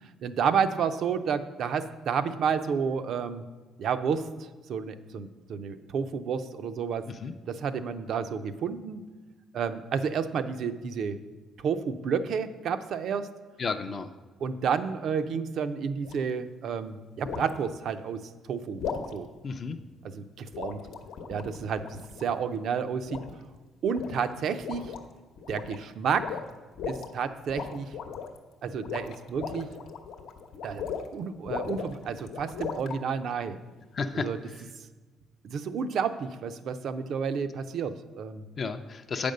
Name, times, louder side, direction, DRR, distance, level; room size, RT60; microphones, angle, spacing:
voice 1, 0.2-3.4 3.8-7.1 7.5-9.0 9.5-11.2 11.6-13.3 14.4-18.2 18.5-18.8 19.1-19.3 20.1-20.8 21.3-23.2 23.8-24.9 25.5-26.4 26.8-27.9 28.6-29.7 30.6-30.8 31.1-33.6 34.1-34.4 35.4-38.4, right 6 dB, 60° right, 10 dB, 0.5 m, -30 dB
voice 2, 13.6-14.1 19.4-19.8 33.9-34.6 38.6-39.3, left 4 dB, 35° left, 7 dB, 0.4 m, -32 dB
sound 1, 16.0-16.3 17.2-17.6 18.8-19.1 20.5-22.4 23.0-23.5 23.9-24.3 24.6-25.0 25.4-25.8 26.2-27.1 27.5-28.4 28.7-31.1 31.5-33.0, left 6 dB, 80° left, 0.9 m, -37 dB
8.5 x 5.2 x 6.5 m, 1.3 s
cardioid pair, 145°, 0 cm